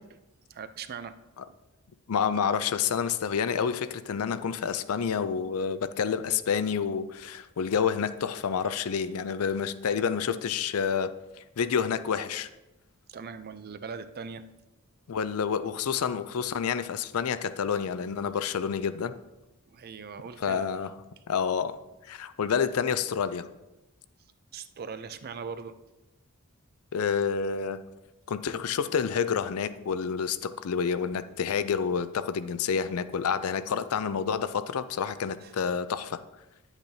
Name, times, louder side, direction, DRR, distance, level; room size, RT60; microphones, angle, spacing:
voice 1, 0.5-1.2 13.1-14.5 19.7-20.7 24.5-25.8 35.4-35.5, right 5 dB, 45° right, 11 dB, 0.4 m, -40 dB
voice 2, 2.1-12.5 15.1-19.2 20.4-20.9 21.3-23.5 26.9-27.8 28.3-36.2, left 6 dB, 70° left, 13 dB, 0.4 m, -29 dB
10.0 x 8.0 x 2.7 m, 1.0 s
head